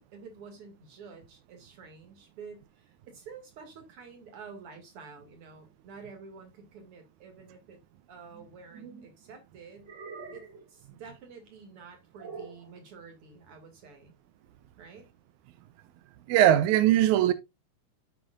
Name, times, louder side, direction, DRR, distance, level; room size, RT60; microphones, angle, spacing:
voice 1, 0.0-7.8 8.1-9.9 10.3-14.1 14.8-15.1, right 5 dB, 45° right, 2.6 m, -49 dB
sound 1, 8.3-9.1 9.8-10.7 12.2-12.7, right 5 dB, 70° right, 1.0 m, -44 dB
voice 2, 16.3-17.3, right 12 dB, 85° right, 1.7 m, -20 dB
12.5 x 5.4 x 2.4 m
omnidirectional pair, 4.1 m